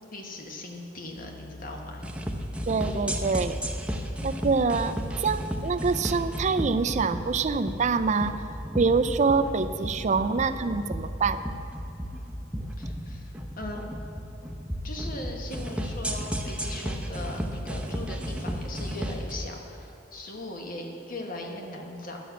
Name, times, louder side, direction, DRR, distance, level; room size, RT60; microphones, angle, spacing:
voice 1, 0.0-2.0 12.8-13.9 14.8-22.2, left 1 dB, 50° left, 1 dB, 1.3 m, -39 dB
Piano, 1.2-6.3, left 1 dB, 65° left, 0.9 m, -44 dB
LP Extreme, 2.0-19.3, equal, 5° right, 0.7 m, -33 dB
voice 2, 2.7-3.6 4.2-8.4 8.8-11.4, right 4 dB, 40° right, 11 dB, 0.4 m, -25 dB
11.0 x 6.2 x 8.1 m, 2.7 s
head